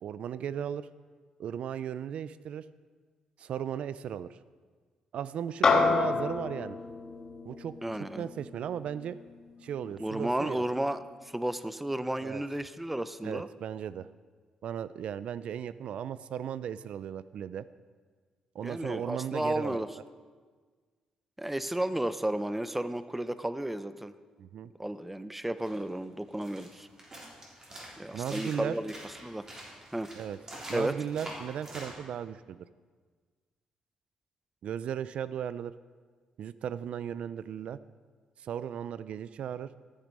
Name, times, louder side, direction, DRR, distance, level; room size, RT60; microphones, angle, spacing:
voice 1, 0.0-0.9 1.4-2.6 3.4-4.4 5.1-6.8 7.5-7.7 8.2-9.2 9.6-10.6 12.2-12.4 13.2-14.1 14.6-17.6 18.5-19.9 24.4-24.7 28.1-28.7 30.1-30.4 30.7-32.6 34.6-35.7 36.4-37.8 38.4-39.7, right 9 dB, 65° right, 15 dB, 0.4 m, -36 dB
sound 1, 5.6-10.3, left 4 dB, 35° left, 1.4 m, -30 dB
voice 2, 7.8-8.3 10.0-13.5 18.6-20.0 21.4-24.1 24.8-26.9 28.0-29.5 29.9-30.1 30.7-31.0, right 1 dB, 5° right, 13 dB, 0.5 m, -33 dB
sound 2, 25.6-31.9, right 1 dB, 30° right, 3.6 m, -46 dB
13.5 x 8.9 x 5.3 m, 1.5 s
cardioid pair, 105°, 2 cm